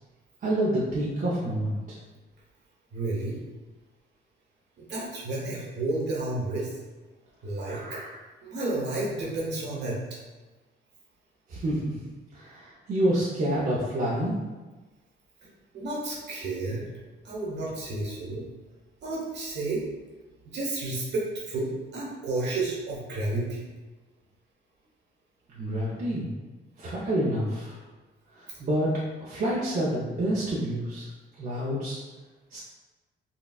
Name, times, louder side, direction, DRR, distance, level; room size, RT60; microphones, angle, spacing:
voice 1, 0.4-2.0 11.5-11.9 12.3-14.4 25.5-26.3 26.8-27.8 28.4-28.9 29.2-31.1 31.4-32.0 32.5-32.6, right 1 dB, 45° right, -6 dB, 0.6 m, -28 dB
voice 2, 2.9-3.4 4.8-6.7 7.4-10.0 15.7-16.9 17.2-18.4 19.0-19.8 20.5-23.7, right 2 dB, 60° right, -5 dB, 1.1 m, -31 dB
4.2 x 2.3 x 2.3 m, 1.3 s
cardioid pair, 90°, 20 cm